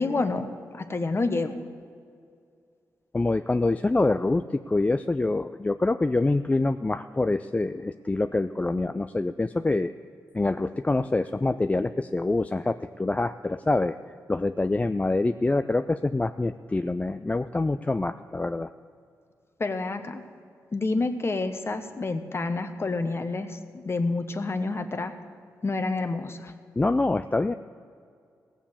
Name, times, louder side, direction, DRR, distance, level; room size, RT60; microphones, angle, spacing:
voice 1, 0.0-1.6 19.6-20.2 20.7-25.1 25.6-26.5, left 3 dB, 40° left, 7 dB, 1.1 m, -28 dB
voice 2, 3.1-9.9 10.3-14.0 14.3-18.7 26.8-27.5, left 2 dB, 20° left, 10 dB, 0.4 m, -25 dB
16.5 x 7.2 x 7.2 m, 2.3 s
cardioid pair, 60°, 7 cm